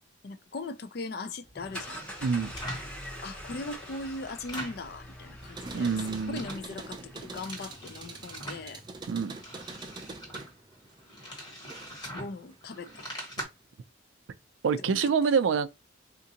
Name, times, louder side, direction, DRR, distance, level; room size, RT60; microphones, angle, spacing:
voice 1, 0.2-2.0 3.2-6.0 6.3-8.8 12.1-13.1 14.9-15.1, left 3 dB, 55° left, 0.4 m, -39 dB
turn On Car, 1.4-7.8, equal, 5° left, 0.7 m, -44 dB
sound 1, 1.6-3.0 3.4-4.9 5.2-6.7 7.1-8.7 9.2-13.4, right 1 dB, 25° left, 1.3 m, -43 dB
sound 2, 5.4-12.1 12.5-13.3, right 3 dB, 25° right, 0.4 m, -45 dB
voice 2, 5.7-6.4 9.1-9.4 14.6-15.7, right 6 dB, 80° right, 0.4 m, -26 dB
3.7 x 2.5 x 2.7 m
head